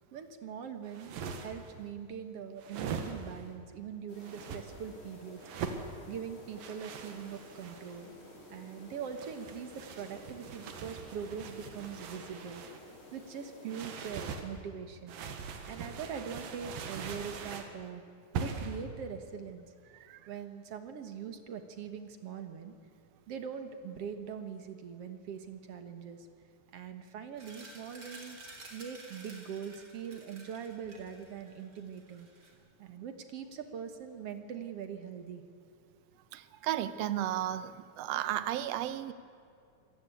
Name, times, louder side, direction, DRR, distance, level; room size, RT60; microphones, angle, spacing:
voice 1, 0.1-8.1 8.5-12.6 13.1-15.2 15.6-18.1 18.3-19.7 20.3-22.7 23.3-26.3 26.7-28.4 28.7-32.3 32.8-35.4, right 7 dB, 55° right, 8 dB, 2.0 m, -42 dB
sound 1, 0.8-1.7 2.6-3.5 4.2-4.6 5.4-5.9 6.6-8.0 9.0-12.8 13.7-14.5 15.1-17.7 18.3-18.8, right 6 dB, 90° right, 3.3 m, -41 dB
sound 2, 4.1-14.4, left 1 dB, 35° left, 6.5 m, -53 dB
sound 3, 27.4-32.5, right 2 dB, 30° right, 3.9 m, -52 dB
voice 2, 36.3-39.1, right 12 dB, 70° right, 13 dB, 1.6 m, -34 dB
26.5 x 17.5 x 8.5 m, 2.4 s
omnidirectional pair, 3.9 m